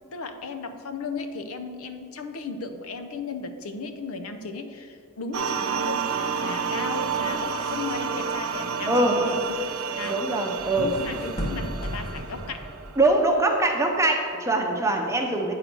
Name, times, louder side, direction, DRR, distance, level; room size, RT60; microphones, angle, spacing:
voice 1, 0.1-6.1 6.4-9.4 10.0-10.2 10.8-12.7, left 4 dB, 70° left, 7 dB, 0.6 m, -35 dB
sound 1, 5.3-13.7, right 6 dB, 70° right, 0.5 m, -30 dB
sound 2, 7.2-13.0, equal, 30° left, 1.2 m, -37 dB
voice 2, 8.9-9.2 10.0-10.9 13.0-15.5, right 2 dB, 15° right, 2 dB, 0.7 m, -23 dB
9.0 x 3.9 x 6.1 m, 2.3 s
head